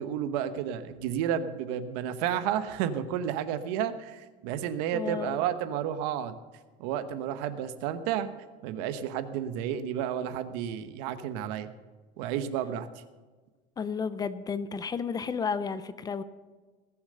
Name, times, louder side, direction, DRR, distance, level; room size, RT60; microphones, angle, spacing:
voice 1, 0.0-6.4 6.8-8.3 8.6-11.7 12.2-12.9, right 9 dB, 80° right, 11 dB, 1.1 m, -31 dB
voice 2, 4.9-5.4 13.8-16.2, left 6 dB, 20° left, 14 dB, 0.5 m, -32 dB
20.0 x 7.2 x 6.7 m, 1.3 s
cardioid pair, 155°, 21 cm